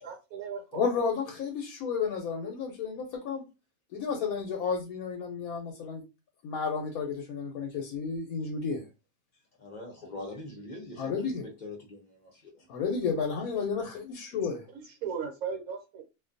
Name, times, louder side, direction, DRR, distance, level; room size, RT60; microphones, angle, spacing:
voice 1, 0.0-0.8 14.7-16.0, right 6 dB, 75° right, 1.2 m, -37 dB
voice 2, 0.7-3.4 3.9-6.0 6.4-8.8 11.0-11.4 12.7-14.6, left 5 dB, 85° left, 1.1 m, -32 dB
voice 3, 9.6-11.3 11.6-12.7, left 2 dB, 45° left, 0.6 m, -43 dB
2.5 x 2.2 x 2.5 m
omnidirectional pair, 1.5 m